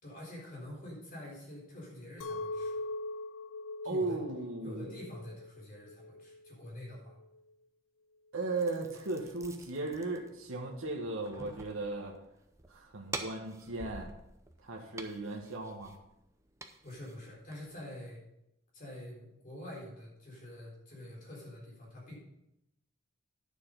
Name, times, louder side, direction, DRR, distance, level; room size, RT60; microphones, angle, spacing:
voice 1, 0.0-2.8 3.8-4.2 4.6-7.1 16.8-18.2 18.7-22.2, left 1 dB, 40° left, -3 dB, 4.0 m, -46 dB
Chink clink, 2.2-7.4, left 2 dB, 75° left, 0.5 m, -41 dB
voice 2, 3.8-4.9 8.3-12.2 12.7-14.1 14.6-15.9, right 2 dB, 75° right, 0 dB, 1.2 m, -36 dB
sound 1, 8.5-17.8, right 3 dB, 15° right, 0.6 m, -48 dB
10.0 x 6.8 x 5.2 m, 0.81 s
head